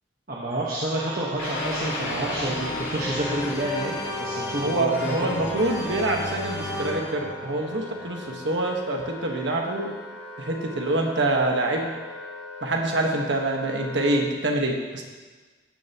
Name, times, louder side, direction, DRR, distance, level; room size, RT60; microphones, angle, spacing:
voice 1, 0.3-5.4, right 1 dB, 50° right, -6 dB, 1.3 m, -29 dB
Wind instrument woodwind instrument, 0.9-14.3, left 1 dB, ahead, 2.0 m, -40 dB
sound 1, 1.4-8.4, left 1 dB, 85° left, 2.7 m, -32 dB
voice 2, 4.6-9.9 10.4-11.9 12.6-15.0, right 2 dB, 75° right, 1 dB, 1.4 m, -26 dB
16.0 x 6.8 x 3.0 m, 1.4 s
head